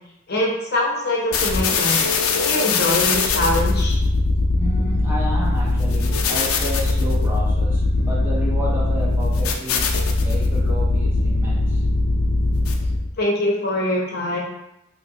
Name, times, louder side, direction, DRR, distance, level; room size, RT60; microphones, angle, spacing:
voice 1, 0.3-2.0 2.3-4.0 13.2-14.4, left 1 dB, 50° left, -3 dB, 0.7 m, -23 dB
sound 1, 1.3-13.1, left 2 dB, 90° left, 0.4 m, -20 dB
voice 2, 4.6-11.8, equal, 10° right, -5 dB, 0.5 m, -31 dB
2.9 x 2.8 x 2.7 m, 0.85 s
head